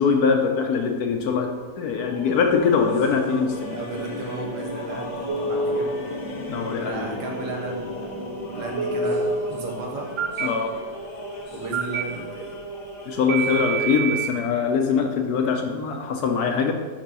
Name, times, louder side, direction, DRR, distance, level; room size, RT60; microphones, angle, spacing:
voice 1, 0.0-3.8 6.5-7.2 10.4-10.8 13.1-16.7, left 5 dB, 70° left, 4 dB, 1.0 m, -23 dB
sound 1, 2.0-13.9, left 1 dB, 35° left, 0.7 m, -35 dB
voice 2, 3.7-5.9 6.8-8.3 8.5-10.1 11.5-12.5, right 3 dB, 70° right, 0 dB, 1.6 m, -34 dB
Telephone, 5.3-5.8 8.8-9.3 10.2-10.5 11.7-12.0 13.3-14.3, right 4 dB, 85° right, 0.6 m, -26 dB
6.0 x 5.2 x 4.0 m, 1.5 s
omnidirectional pair, 1.9 m